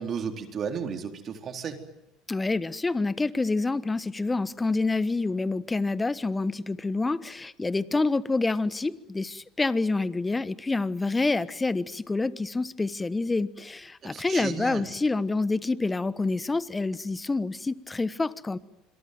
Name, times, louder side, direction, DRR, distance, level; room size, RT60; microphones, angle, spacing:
voice 1, 0.0-1.8 14.0-14.9, right 6 dB, 45° right, 5 dB, 4.0 m, -33 dB
voice 2, 2.3-18.6, left 3 dB, 15° left, 16 dB, 1.2 m, -27 dB
27.0 x 22.5 x 9.4 m, 0.88 s
hypercardioid pair, 80°, 0 cm